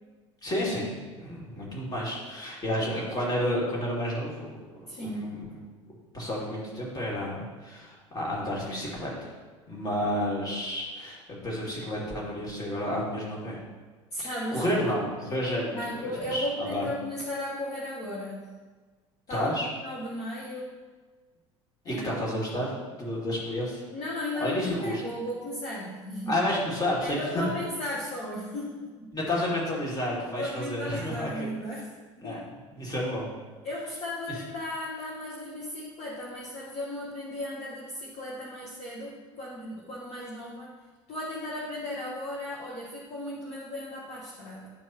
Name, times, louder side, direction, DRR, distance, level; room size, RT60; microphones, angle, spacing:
voice 1, 0.4-4.6 5.0-5.6 6.1-9.3 9.7-13.6 14.2-16.8 19.3-19.7 21.9-22.7 23.0-23.8 24.4-25.0 26.3-27.5 29.1-31.5 32.2-32.4 32.7-33.3, left 1 dB, 25° left, -4 dB, 2.4 m, -31 dB
voice 2, 4.9-5.3 14.1-14.6 15.7-18.5 19.3-19.5 19.8-20.8 21.8-22.0 23.9-26.4 27.0-29.1 30.3-31.9 32.2-32.5 33.6-40.7 41.1-44.7, left 1 dB, 40° left, -5 dB, 1.2 m, -35 dB
11.0 x 4.6 x 2.9 m, 1.4 s
figure-of-eight pair, 70°, 16 cm